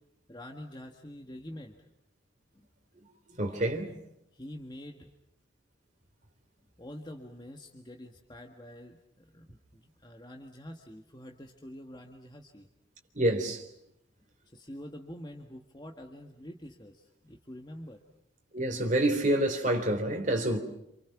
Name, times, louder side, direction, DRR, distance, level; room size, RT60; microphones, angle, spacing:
voice 1, 0.3-1.8 3.4-3.7 4.3-5.1 6.8-12.7 14.5-18.0 20.3-20.5, left 1 dB, 20° left, 1.6 m, -46 dB
voice 2, 3.0-3.9 13.1-13.7 18.5-20.6, right 1 dB, 40° right, 3.5 m, -28 dB
28.5 x 28.0 x 6.0 m
head